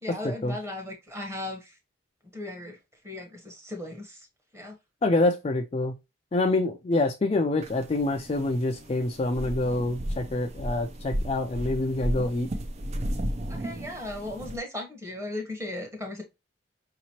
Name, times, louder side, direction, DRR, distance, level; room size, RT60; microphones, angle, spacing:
voice 1, 0.0-1.8 2.3-2.8 3.0-4.3 4.5-4.8 13.5-16.2, left 1 dB, 15° right, 1.0 m, -37 dB
voice 2, 5.0-5.9 6.3-12.5, left 2 dB, 30° left, 0.3 m, -26 dB
sound 1, 7.6-14.6, equal, 35° right, 0.4 m, -34 dB
5.1 x 2.9 x 2.9 m
head